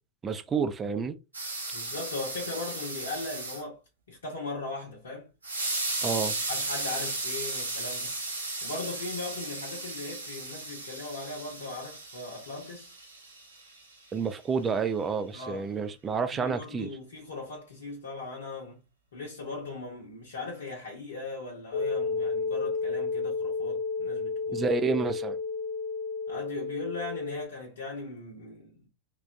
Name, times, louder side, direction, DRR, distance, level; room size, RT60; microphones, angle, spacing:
voice 1, 0.2-1.2 6.0-6.4 14.1-16.9 24.5-25.4, right 5 dB, 20° right, 0.4 m, -29 dB
sound 1, 1.3-3.6 5.4-13.8, right 2 dB, 80° right, 0.8 m, -35 dB
voice 2, 1.7-3.8 4.1-5.3 6.5-8.2 8.6-12.9 15.3-15.7 16.3-18.8 19.1-24.7 26.3-28.9, left 3 dB, 65° left, 0.8 m, -39 dB
sound 2, 21.7-27.5, left 4 dB, 35° left, 0.5 m, -31 dB
3.4 x 2.2 x 2.5 m
figure-of-eight pair, 90°, 0 cm